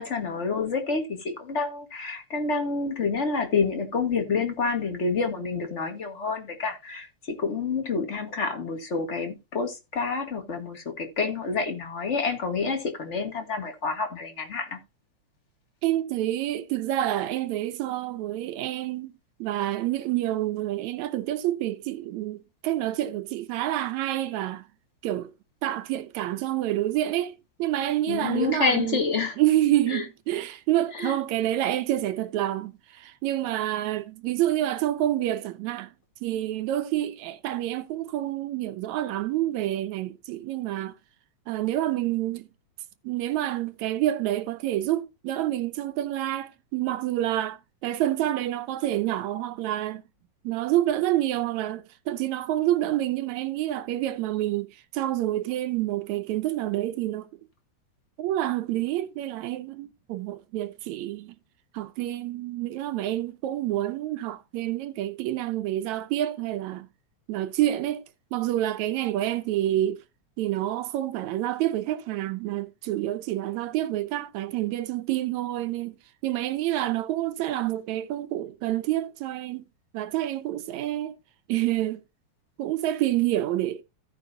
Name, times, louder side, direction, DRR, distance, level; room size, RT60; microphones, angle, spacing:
voice 1, 0.0-14.8 28.1-29.4 29.9-30.0 30.9-31.2, left 4 dB, 35° left, 1.3 m, -28 dB
voice 2, 15.8-19.1 19.4-24.7 25.0-25.3 25.6-29.0 29.4-35.9 36.2-41.0 41.5-42.5 43.0-50.1 50.4-57.3 58.2-61.4 61.7-66.9 67.3-68.0 68.3-70.0 70.4-79.7 79.9-81.2 81.5-82.0 82.6-83.8, right 14 dB, 80° right, 2.0 m, -28 dB
16.0 x 5.4 x 2.7 m
omnidirectional pair, 3.3 m